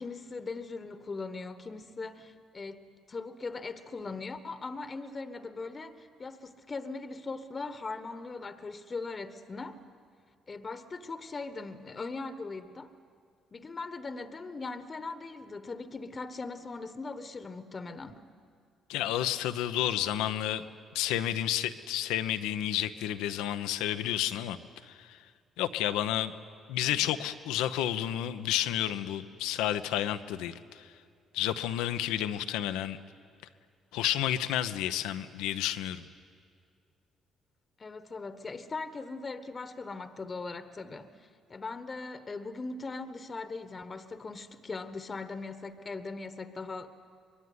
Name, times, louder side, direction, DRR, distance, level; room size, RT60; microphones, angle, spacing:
voice 1, 0.0-9.8 10.5-12.9 13.5-18.3 26.8-27.2 37.8-47.0, left 3 dB, 35° left, 1.3 m, -40 dB
voice 2, 18.9-20.6 20.9-24.6 24.9-25.2 25.6-26.3 26.7-30.9 31.3-33.0 33.9-36.0, left 12 dB, 80° left, 0.9 m, -31 dB
24.5 x 21.5 x 9.6 m
hypercardioid pair, 50°, 0 cm